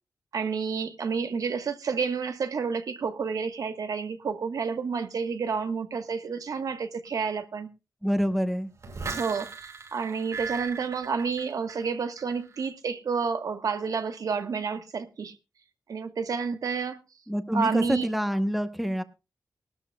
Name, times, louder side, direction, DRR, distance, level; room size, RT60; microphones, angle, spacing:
voice 1, 0.3-7.7 9.2-15.3 15.9-17.0 17.5-18.1, right 5 dB, 80° right, 1.3 m, -30 dB
voice 2, 8.0-8.7 17.3-19.0, equal, ahead, 0.9 m, -27 dB
sound 1, 8.8-11.9 12.2-12.6, right 5 dB, 60° right, 5.5 m, -38 dB
20.5 x 12.5 x 2.3 m
wide cardioid pair, 150°, 6 cm